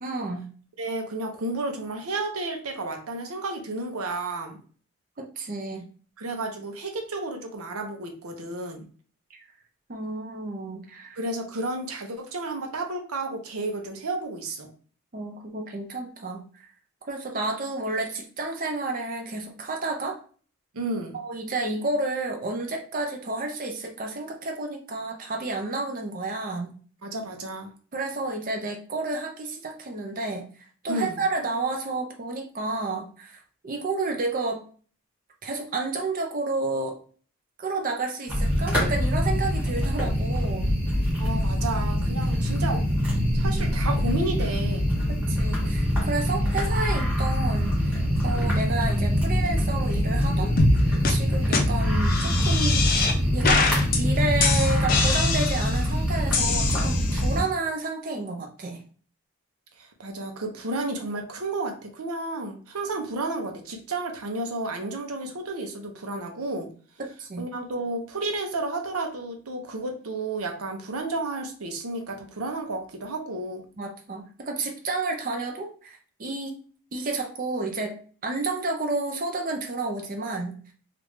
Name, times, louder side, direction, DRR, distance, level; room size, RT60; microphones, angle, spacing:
voice 1, 0.0-0.5 5.2-5.8 9.9-11.2 15.1-16.7 17.1-20.2 21.1-26.7 27.9-30.4 30.8-34.6 35.4-37.0 37.6-40.7 42.7-42.8 45.3-48.0 48.2-52.8 53.3-53.6 54.0-58.8 67.0-67.4 73.8-76.6 76.9-78.0 78.2-80.6, right 2 dB, 40° right, 2 dB, 0.5 m, -31 dB
voice 2, 0.8-4.6 6.2-8.8 11.1-14.7 20.7-21.2 27.0-27.7 30.9-31.2 41.2-42.8 43.3-44.8 59.8-66.7 67.4-73.6, right 2 dB, 90° right, 4 dB, 0.8 m, -32 dB
sound 1, 38.3-57.4, equal, 5° right, 1.8 m, -24 dB
sound 2, 50.6-50.8 51.0-51.1 51.5-51.6 52.1-53.1 53.4-54.0 54.4-55.8 56.3-57.3, left 4 dB, 40° left, 0.5 m, -24 dB
3.3 x 2.5 x 3.2 m, 0.42 s
head